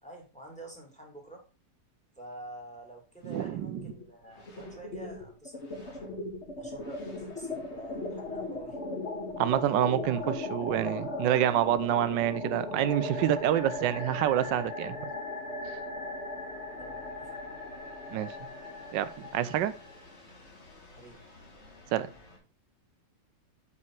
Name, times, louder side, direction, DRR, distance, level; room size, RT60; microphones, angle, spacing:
voice 1, 0.0-1.4 2.2-6.2 6.6-8.8 16.8-17.4 20.9-21.2, right 1 dB, 5° left, 2.3 m, -48 dB
sound 1, 3.2-4.0 4.3-22.4, left 2 dB, 40° left, 2.1 m, -38 dB
voice 2, 3.3-3.8 9.4-15.1 15.7-15.8 18.1-18.4 18.9-19.7 21.9-22.1, right 11 dB, 85° right, 1.3 m, -27 dB
8.4 x 5.2 x 4.6 m
omnidirectional pair, 1.9 m